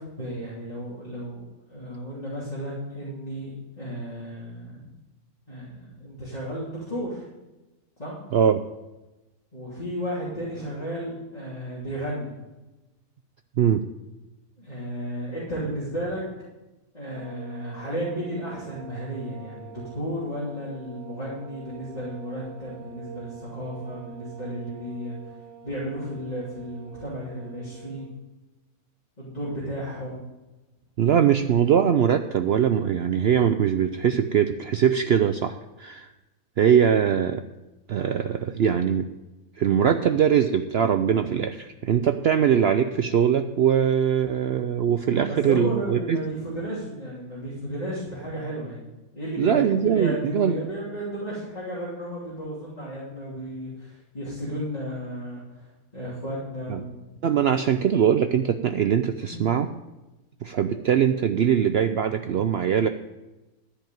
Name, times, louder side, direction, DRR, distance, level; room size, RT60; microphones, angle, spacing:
voice 1, 0.0-1.4 1.7-4.9 5.5-7.3 8.0-8.2 9.5-12.3 14.6-16.2 16.9-25.2 25.6-28.1 29.2-30.2 45.3-48.8 49.1-55.7 55.9-57.2 59.1-59.5, equal, 25° left, -9 dB, 3.1 m, -33 dB
voice 2, 8.3-8.6 13.6-13.8 31.0-36.1 36.6-37.4 37.9-39.1 39.6-46.2 49.4-50.6 56.7-56.8 57.2-59.7 60.4-62.9, right 8 dB, 75° right, 8 dB, 0.5 m, -22 dB
sound 1, 17.1-28.1, right 7 dB, 15° right, 2.2 m, -46 dB
13.5 x 5.1 x 9.1 m, 1.0 s
omnidirectional pair, 1.6 m